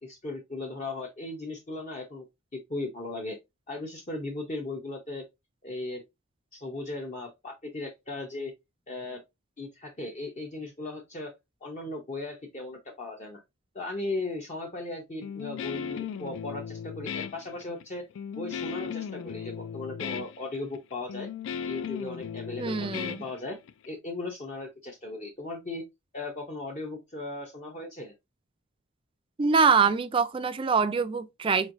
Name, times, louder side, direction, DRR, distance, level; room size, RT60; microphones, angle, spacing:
voice 1, 0.0-2.3 2.5-3.4 3.7-5.2 5.6-6.0 6.5-8.5 8.9-9.2 9.6-11.3 11.6-13.4 13.7-18.0 18.4-21.3 21.6-23.6 23.9-25.8 26.1-28.1, left 2 dB, 35° left, 0.6 m, -37 dB
Guitar, 15.2-23.9, left 7 dB, 65° left, 0.3 m, -36 dB
voice 2, 22.6-23.2 29.4-31.7, right 5 dB, 25° right, 0.3 m, -24 dB
4.3 x 3.1 x 2.5 m
head